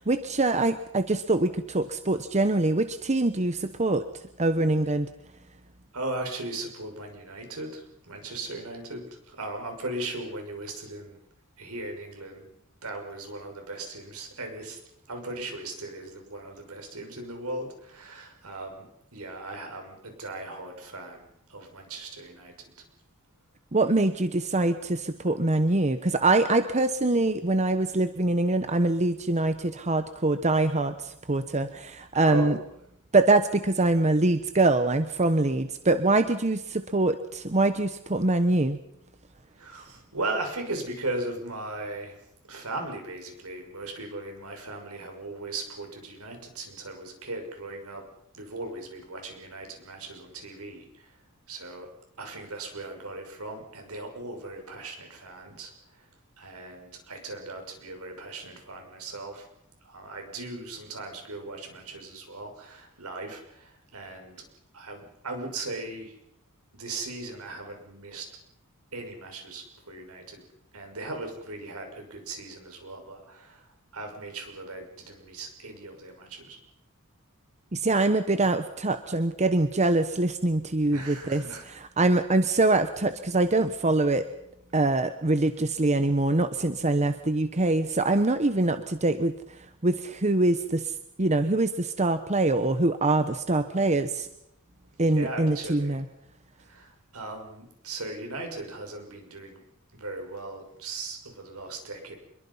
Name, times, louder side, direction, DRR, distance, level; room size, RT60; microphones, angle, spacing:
voice 1, 0.0-4.0 4.4-5.1 23.7-32.5 33.1-38.8 77.7-84.3 84.7-89.3 89.8-94.3 95.0-96.0, right 2 dB, 30° right, 10 dB, 1.1 m, -24 dB
voice 2, 5.9-11.2 11.6-12.5 12.8-14.8 15.1-22.7 32.1-32.6 39.6-42.2 42.5-48.0 48.3-51.2 51.5-51.9 52.2-56.1 56.4-59.5 59.8-64.4 64.7-66.2 66.7-68.3 68.9-70.4 70.7-76.6 80.9-81.6 95.0-96.0 96.6-99.6 99.9-102.2, right 2 dB, 75° right, 4 dB, 6.2 m, -38 dB
27.0 x 22.5 x 5.6 m, 0.78 s
head